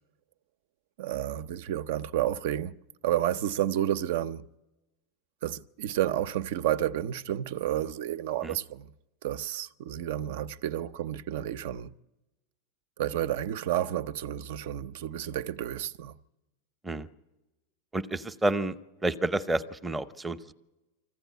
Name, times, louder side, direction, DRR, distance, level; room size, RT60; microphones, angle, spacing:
voice 1, 1.0-2.8 3.0-4.5 5.4-8.9 9.2-11.9 13.0-16.2, right 12 dB, 65° right, 0.7 m, -31 dB
voice 2, 17.9-18.8 19.0-20.5, right 2 dB, 10° right, 0.7 m, -29 dB
25.0 x 15.5 x 9.3 m
supercardioid pair, 160°, 0 cm